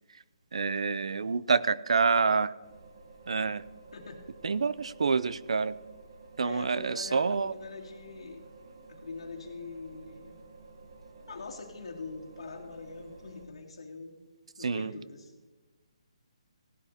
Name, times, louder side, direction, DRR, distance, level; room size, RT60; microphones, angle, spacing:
voice 1, 0.5-2.5 3.3-3.6 4.4-5.7 6.4-7.5 14.6-14.9, right 5 dB, 65° right, 18 dB, 0.4 m, -27 dB
sound 1, 2.6-13.5, right 3 dB, 40° right, 1.0 m, -52 dB
voice 2, 3.9-4.2 6.4-8.4 8.9-10.4 11.3-14.2 14.6-15.3, left 4 dB, 60° left, -1 dB, 2.4 m, -43 dB
17.0 x 11.5 x 2.8 m, 1.2 s
hypercardioid pair, 175°, 3 cm